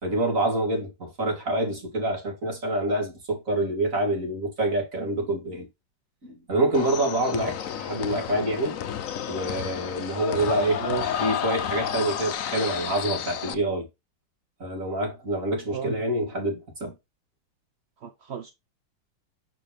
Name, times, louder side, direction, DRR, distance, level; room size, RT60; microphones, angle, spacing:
voice 1, 0.0-5.7 6.2-8.8 9.3-10.8 11.2-13.9 14.6-16.9, right 1 dB, 45° right, 3.2 m, -26 dB
sound 1, 6.7-13.5, left 9 dB, 60° left, 1.0 m, -31 dB
voice 2, 10.8-11.3 15.7-16.0 18.0-18.5, right 9 dB, 60° right, 0.6 m, -34 dB
7.5 x 5.0 x 3.5 m
omnidirectional pair, 2.0 m